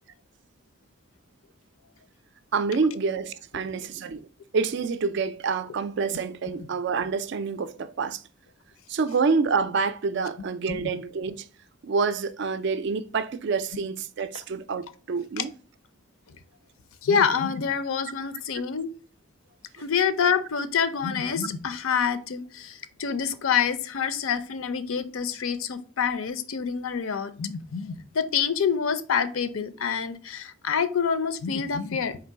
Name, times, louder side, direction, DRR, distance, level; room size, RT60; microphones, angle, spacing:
voice 1, 2.5-4.3 4.5-8.2 8.9-11.5 11.8-15.5, right 5 dB, 55° right, 0.3 m, -27 dB
voice 2, 17.0-18.9 19.8-32.2, left 6 dB, 70° left, 0.5 m, -27 dB
3.8 x 2.9 x 4.4 m
head